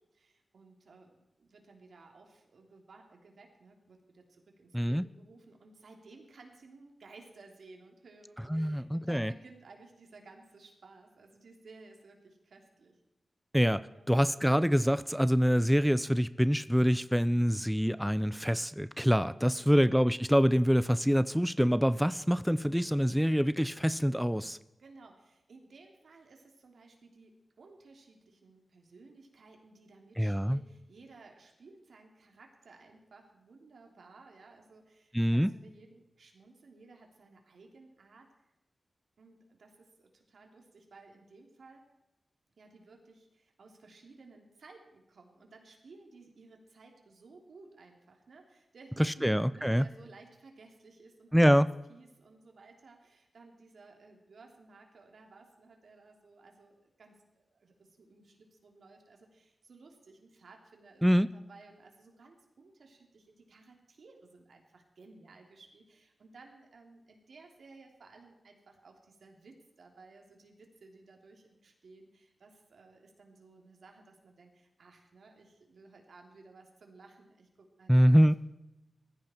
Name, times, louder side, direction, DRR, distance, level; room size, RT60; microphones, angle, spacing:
voice 1, 0.1-13.0 13.8-14.1 19.6-19.9 24.8-38.3 39.2-41.8 42.6-51.5 51.9-61.0 61.3-78.4, right 3 dB, 80° right, 2 dB, 3.1 m, -56 dB
voice 2, 4.7-5.1 8.5-9.3 13.5-24.6 30.2-30.6 35.1-35.5 49.0-49.9 51.3-51.7 61.0-61.3 77.9-78.3, equal, ahead, 15 dB, 0.4 m, -25 dB
19.5 x 15.0 x 4.5 m, 0.96 s
wide cardioid pair, 100°, 0 cm